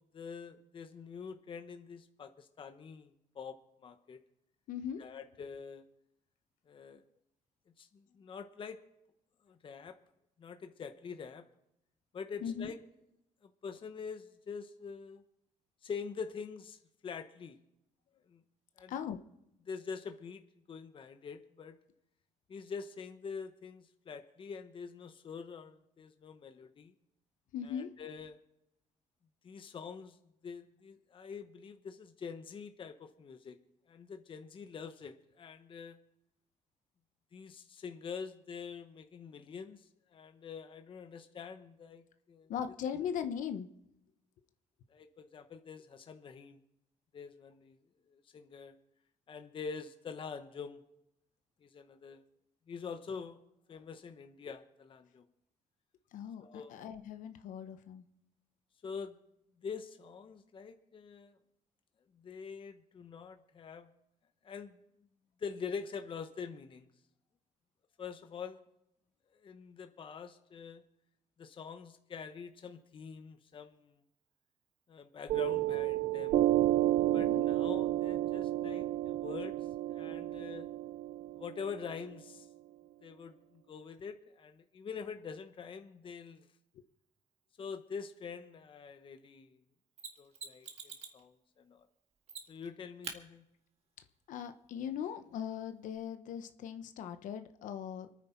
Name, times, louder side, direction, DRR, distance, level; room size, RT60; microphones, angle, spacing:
voice 1, 0.1-3.6 3.8-4.2 5.0-5.8 6.7-7.0 7.8-8.8 9.4-10.0 10.4-11.5 12.1-12.8 13.4-15.2 15.8-17.6 18.3-18.4 18.8-18.9 19.7-21.8 22.5-26.9 27.6-28.4 29.4-33.6 33.9-36.0 37.3-42.5 44.9-46.6 47.1-47.8 48.1-48.7 49.3-50.8 51.6-52.2 52.7-53.4 53.7-55.2 56.4-56.8 58.8-59.2 59.6-61.4 62.1-63.9 64.4-64.8 65.4-66.9 68.0-68.6 69.3-70.8 71.4-74.0 74.9-76.5 77.1-79.6 79.9-80.7 81.3-82.5 83.0-86.5 87.6-89.6 90.2-91.9 92.5-93.4, left 6 dB, 40° left, 7 dB, 0.9 m, -45 dB
voice 2, 4.7-5.0 12.4-12.7 18.9-19.2 27.5-27.9 42.5-43.7 56.1-58.0 77.1-77.5 86.7-86.8 94.3-98.1, left 8 dB, 85° left, 9 dB, 0.9 m, -39 dB
Piano, 75.3-82.4, right 14 dB, 75° right, 0.5 m, -31 dB
Mechanisms, 90.0-91.2 92.3-92.7 93.0-93.2 95.9-96.0, right 5 dB, 55° right, 1.8 m, -45 dB
25.5 x 9.5 x 4.4 m, 0.82 s
cardioid pair, 125°, 13 cm